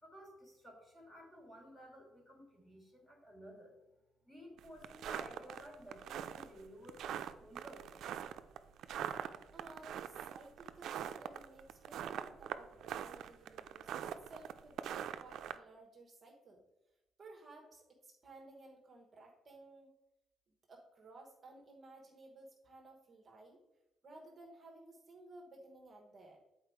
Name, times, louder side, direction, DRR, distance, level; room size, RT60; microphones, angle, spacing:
voice 1, 0.0-3.7 4.2-8.0, equal, 10° left, 0 dB, 2.0 m, -54 dB
sound 1, 4.6-15.6, right 9 dB, 70° right, 0.4 m, -42 dB
voice 2, 9.5-16.6 17.2-19.9 20.5-23.6 24.0-26.4, right 2 dB, 30° right, 0 dB, 1.1 m, -57 dB
8.5 x 4.3 x 4.6 m, 0.94 s
cardioid pair, 140°, 0 cm